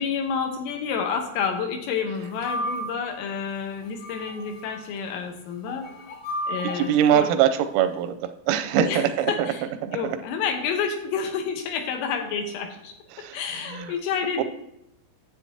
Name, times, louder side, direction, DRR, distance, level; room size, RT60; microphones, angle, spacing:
voice 1, 0.0-5.9 6.5-7.3 8.8-9.6 9.9-14.4, left 6 dB, 80° left, 4 dB, 3.7 m, -29 dB
sound 1, 2.3-3.1 3.8-4.7 5.7-7.2, equal, 60° left, 2.7 m, -33 dB
voice 2, 6.6-9.5 9.8-10.2 13.1-13.9 14.4-14.5, right 9 dB, 90° right, 8 dB, 3.5 m, -23 dB
11.5 x 8.4 x 2.9 m, 0.82 s
omnidirectional pair, 5.9 m